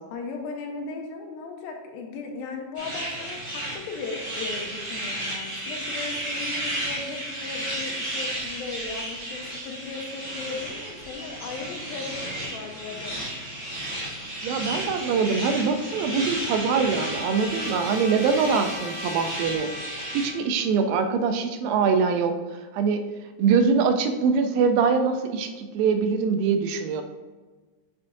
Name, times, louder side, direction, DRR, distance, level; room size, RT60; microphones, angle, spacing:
voice 1, 0.1-13.3, left 4 dB, 90° left, 2 dB, 2.7 m, -37 dB
sound 1, 2.7-20.3, right 1 dB, 20° right, 0.7 m, -33 dB
voice 2, 14.4-19.7 20.1-22.4 22.7-23.0 23.4-27.0, right 5 dB, 85° right, 7 dB, 2.4 m, -23 dB
Trumpet, 15.7-20.6, left 1 dB, 65° left, 2.6 m, -40 dB
7.8 x 5.7 x 2.6 m, 1.3 s
omnidirectional pair, 4.1 m